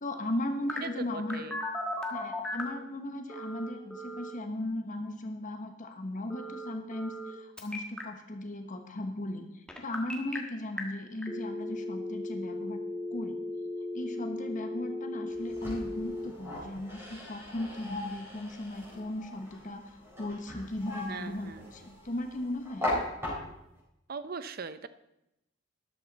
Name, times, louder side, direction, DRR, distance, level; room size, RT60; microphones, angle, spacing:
voice 1, 0.0-1.4 2.1-12.8 13.1-13.4 13.9-23.1, left 1 dB, 40° left, 5 dB, 1.1 m, -37 dB
Telephone, 0.7-2.8 3.3-4.3 6.3-7.3 7.6-8.0 9.7-10.4 10.8-10.9 11.2-16.3, left 1 dB, 5° left, 1.5 m, -37 dB
voice 2, 0.8-1.6 21.1-21.7 24.1-24.9, right 5 dB, 50° right, 13 dB, 0.6 m, -40 dB
sound 1, 15.3-23.8, left 1 dB, 15° right, 4.1 m, -39 dB
13.0 x 11.5 x 4.0 m, 0.86 s
head